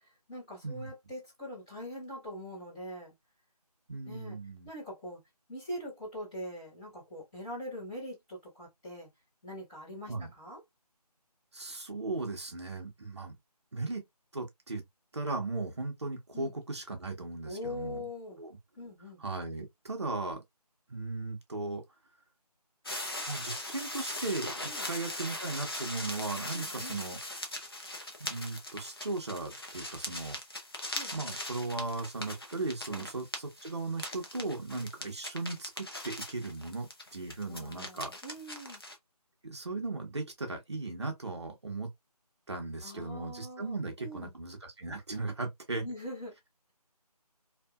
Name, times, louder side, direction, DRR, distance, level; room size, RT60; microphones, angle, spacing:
voice 1, 0.3-3.1 4.0-4.4 4.6-5.2 5.5-9.1 9.4-10.6 16.3-16.5 17.5-18.4 18.8-19.2 24.6-24.9 26.5-27.0 30.9-31.1 32.9-33.1 37.5-38.8 42.8-44.3 45.8-46.3, left 1 dB, 10° left, 1.3 m, -42 dB
voice 2, 3.9-4.7 10.1-10.3 11.5-13.3 13.7-14.0 14.3-14.8 15.1-18.0 18.4-18.6 19.2-20.4 20.9-21.8 23.3-24.5 24.8-27.2 28.2-30.4 31.1-38.1 39.4-41.9 42.5-45.8, right 3 dB, 45° right, 0.8 m, -37 dB
sound 1, 22.9-39.0, left 1 dB, 35° left, 0.6 m, -40 dB
2.7 x 2.5 x 2.3 m
figure-of-eight pair, 170°, 20 cm